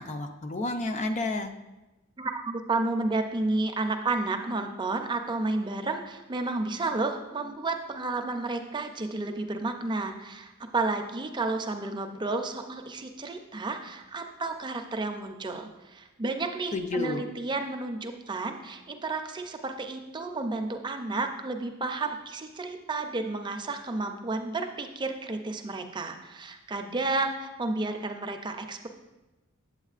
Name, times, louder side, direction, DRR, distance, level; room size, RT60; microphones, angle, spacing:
voice 1, 0.0-1.5 16.7-17.2, left 2 dB, 35° left, 7 dB, 0.5 m, -30 dB
voice 2, 2.2-28.9, right 3 dB, 20° right, 5 dB, 0.5 m, -31 dB
8.1 x 8.0 x 2.4 m, 1.1 s
head